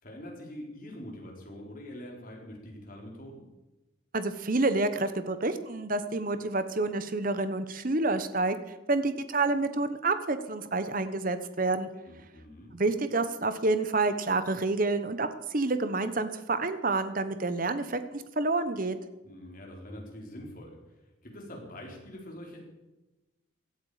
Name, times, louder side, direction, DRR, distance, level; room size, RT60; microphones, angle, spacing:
voice 1, 0.0-3.5 12.1-12.7 19.2-22.6, left 1 dB, 40° left, 0 dB, 4.0 m, -44 dB
voice 2, 4.1-8.6 8.9-11.9 12.7-19.0, right 3 dB, 40° right, 11 dB, 1.0 m, -28 dB
17.0 x 13.0 x 4.9 m, 1.0 s
head